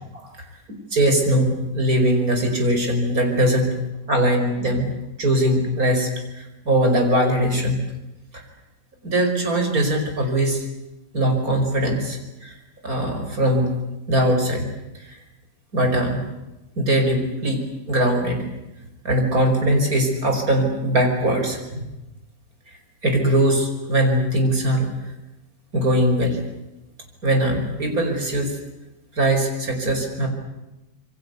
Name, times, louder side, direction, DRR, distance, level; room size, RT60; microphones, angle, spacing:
voice 1, 0.9-3.8 4.1-4.9 5.2-6.1 6.4-7.8 9.0-10.6 11.1-12.5 12.8-13.7 14.1-14.7 15.7-16.2 16.8-18.4 19.0-21.8 23.0-24.9 25.7-26.4 27.2-28.5 29.2-30.3, right 1 dB, 55° right, 4 dB, 5.8 m, -21 dB
27.5 x 23.0 x 8.2 m, 1.0 s
omnidirectional pair, 1.8 m